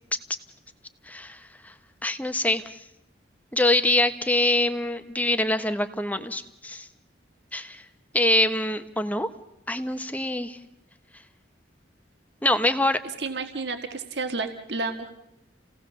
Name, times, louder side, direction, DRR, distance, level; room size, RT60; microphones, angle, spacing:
voice 1, 1.1-1.7 2.0-2.8 3.5-6.9 7.5-7.8 8.1-9.3 9.7-10.6 12.4-13.0, left 1 dB, 10° left, 9 dB, 1.0 m, -24 dB
voice 2, 13.2-15.1, right 3 dB, 65° right, 6 dB, 1.8 m, -31 dB
30.0 x 17.5 x 7.0 m, 0.91 s
head